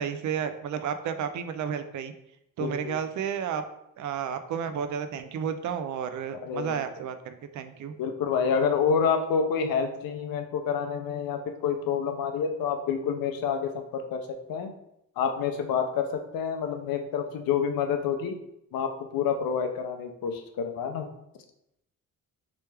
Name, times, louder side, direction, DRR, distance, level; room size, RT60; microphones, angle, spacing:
voice 1, 0.0-2.1 2.6-3.6 4.0-7.9, right 7 dB, 60° right, 9 dB, 0.5 m, -32 dB
voice 2, 2.6-3.0 6.4-6.8 8.0-14.7 15.2-18.4 18.7-21.1, left 6 dB, 90° left, 6 dB, 0.6 m, -28 dB
3.4 x 3.0 x 3.2 m, 0.80 s
cardioid pair, 120°, 34 cm